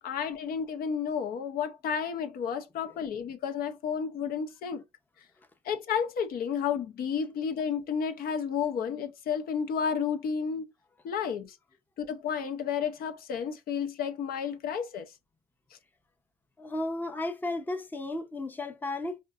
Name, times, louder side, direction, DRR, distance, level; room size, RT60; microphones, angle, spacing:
voice 1, 0.0-4.8 5.6-10.7 11.0-11.6 12.0-15.1, left 7 dB, 60° left, 0.7 m, -31 dB
voice 2, 16.6-19.2, left 2 dB, 10° left, 0.6 m, -34 dB
5.2 x 2.5 x 2.4 m
cardioid pair, 110°, 17 cm